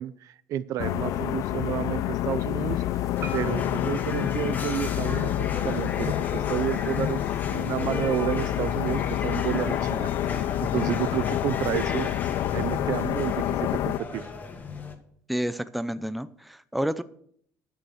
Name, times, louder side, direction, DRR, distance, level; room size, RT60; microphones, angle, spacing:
voice 1, 0.0-2.8 3.3-7.2 7.5-10.1 10.6-12.1 12.5-14.3, right 12 dB, 65° right, 16 dB, 0.6 m, -30 dB
sound 1, 0.8-14.0, left 13 dB, 70° left, 0.5 m, -28 dB
sound 2, 3.1-15.0, left 5 dB, 30° left, 1.6 m, -36 dB
Marimba xylophone, 3.2-7.4, left 1 dB, 45° right, 1.9 m, -41 dB
voice 2, 15.3-17.0, equal, ahead, 13 dB, 0.5 m, -30 dB
11.0 x 6.7 x 6.4 m, 0.63 s
cardioid pair, 120°, 6 cm